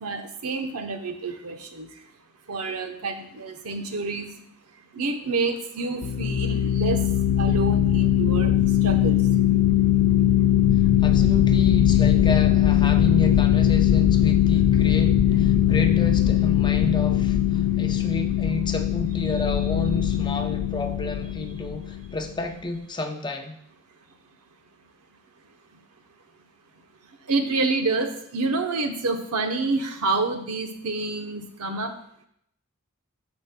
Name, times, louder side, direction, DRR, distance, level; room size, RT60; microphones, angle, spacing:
voice 1, 0.0-1.9 2.5-4.3 4.9-7.0 7.4-8.5 8.8-9.2 27.3-31.9, right 3 dB, 80° right, 6 dB, 0.8 m, -28 dB
sound 1, 6.0-22.3, left 11 dB, 65° left, 0.3 m, -20 dB
voice 2, 11.0-23.6, left 2 dB, 20° left, 5 dB, 0.6 m, -31 dB
13.0 x 5.3 x 2.2 m, 0.70 s
head